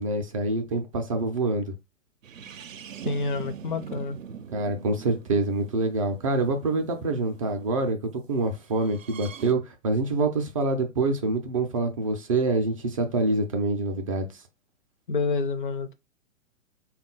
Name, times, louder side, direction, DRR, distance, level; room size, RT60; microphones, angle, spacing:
voice 1, 0.0-1.7 4.5-8.0 8.3-14.3, right 2 dB, 25° right, 0.4 m, -26 dB
sound 1, 2.2-7.9 8.8-9.5, right 7 dB, 75° right, 0.6 m, -42 dB
voice 2, 3.0-4.2 15.1-15.9, left 4 dB, 40° left, 0.4 m, -28 dB
3.5 x 2.3 x 3.8 m
figure-of-eight pair, 115°, 39 cm